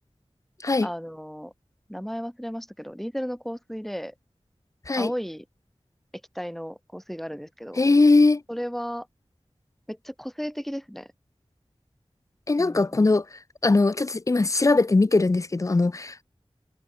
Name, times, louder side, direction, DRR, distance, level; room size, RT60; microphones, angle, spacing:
voice 1, 0.8-1.5 1.9-4.1 5.0-5.4 6.3-7.8 8.5-9.1 9.9-11.1 12.6-13.0, equal, ahead, 3.1 m, -34 dB
voice 2, 7.8-8.4 12.5-13.2 13.6-16.2, left 3 dB, 30° left, 0.4 m, -20 dB
wide cardioid pair, 60°, 11 cm